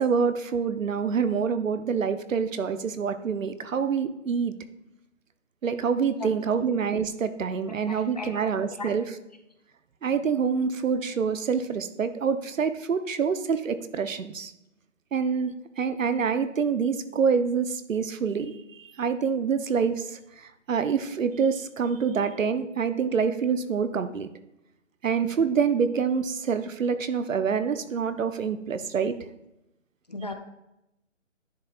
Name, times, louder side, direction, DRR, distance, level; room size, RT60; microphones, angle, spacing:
voice 1, 0.0-4.5 5.6-9.0 10.0-14.5 15.1-24.3 25.0-29.2, right 6 dB, 85° right, 11 dB, 0.8 m, -26 dB
voice 2, 6.2-6.7 7.7-8.9 30.1-30.3, left 2 dB, 35° left, 6 dB, 0.5 m, -38 dB
10.5 x 4.1 x 2.3 m, 0.87 s
hypercardioid pair, 160°, 38 cm